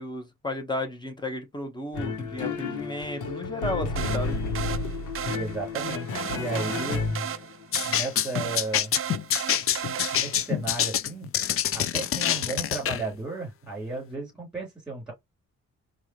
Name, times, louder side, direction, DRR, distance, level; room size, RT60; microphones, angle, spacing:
voice 1, 0.0-4.4, left 1 dB, 15° left, 1.1 m, -33 dB
sound 1, 1.9-7.7, left 4 dB, 80° left, 1.1 m, -31 dB
sound 2, 4.0-10.6, right 9 dB, 45° right, 0.5 m, -35 dB
voice 2, 5.3-7.0 7.8-8.9 9.5-9.7 10.1-11.3 11.7-15.1, right 3 dB, 5° right, 3.2 m, -34 dB
sound 3, 7.7-13.0, left 10 dB, 45° left, 0.4 m, -26 dB
4.7 x 2.5 x 3.0 m
cardioid pair, 100°, 30 cm